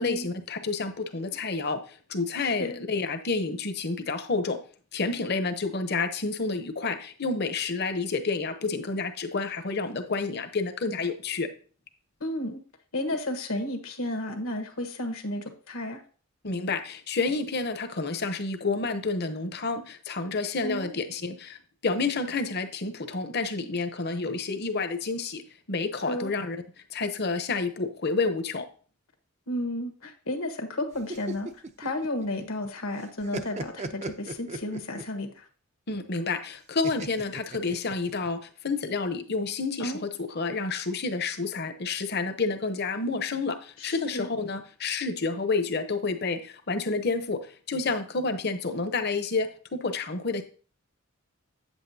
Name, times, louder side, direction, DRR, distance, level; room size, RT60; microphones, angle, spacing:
voice 1, 0.0-4.6 4.9-11.5 16.4-21.6 21.8-25.4 25.7-26.6 26.9-28.7 35.9-50.4, left 4 dB, 50° left, 8 dB, 0.8 m, -29 dB
voice 2, 2.4-2.7 12.2-12.6 12.9-16.0 20.6-20.9 26.0-26.3 29.5-31.5 31.8-35.5 39.8-40.0 43.8-44.3, left 1 dB, 80° left, 5 dB, 1.4 m, -32 dB
sound 1, 30.9-32.7 33.0-35.2 36.8-38.3, right 2 dB, 30° right, 0.5 m, -37 dB
8.3 x 8.1 x 2.8 m, 0.40 s
head